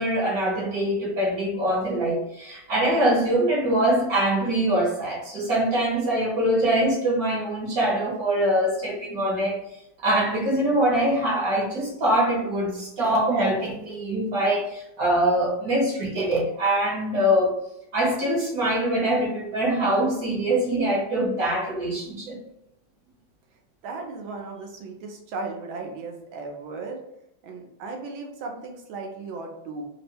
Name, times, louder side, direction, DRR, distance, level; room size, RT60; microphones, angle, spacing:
voice 1, 0.0-9.6 10.0-17.6 17.9-22.4, right 1 dB, 55° right, -3 dB, 1.2 m, -23 dB
voice 2, 23.8-27.0 27.4-29.9, right 3 dB, 80° right, 2 dB, 1.5 m, -36 dB
3.7 x 2.1 x 4.3 m, 0.81 s
omnidirectional pair, 2.2 m